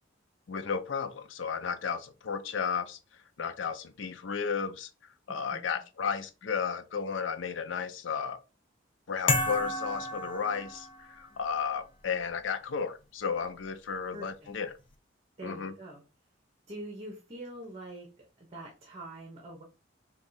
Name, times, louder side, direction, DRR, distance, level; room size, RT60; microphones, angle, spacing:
voice 1, 0.5-3.0 3.4-4.9 5.3-8.4 9.1-14.8 15.4-15.7, left 6 dB, 75° left, 0.5 m, -33 dB
voice 2, 5.3-5.6 14.1-14.5 15.4-16.0 16.7-19.6, right 1 dB, 35° right, 0.8 m, -44 dB
sound 1, 9.3-11.2, left 2 dB, 25° left, 0.5 m, -31 dB
3.4 x 2.4 x 3.9 m
head